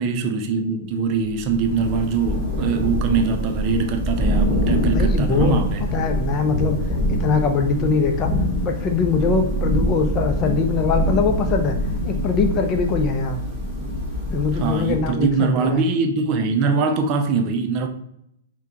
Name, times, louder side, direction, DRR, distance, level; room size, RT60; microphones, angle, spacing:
voice 1, 0.0-5.8 14.5-17.9, right 5 dB, 40° right, 0.6 m, -22 dB
Thunder / Rain, 1.3-15.3, equal, 5° right, 1.5 m, -24 dB
voice 2, 4.8-6.8 7.1-8.3 8.6-11.8 12.0-13.4 14.3-15.8, left 5 dB, 30° left, 0.5 m, -22 dB
5.7 x 2.2 x 2.9 m
figure-of-eight pair, 110°, 0 cm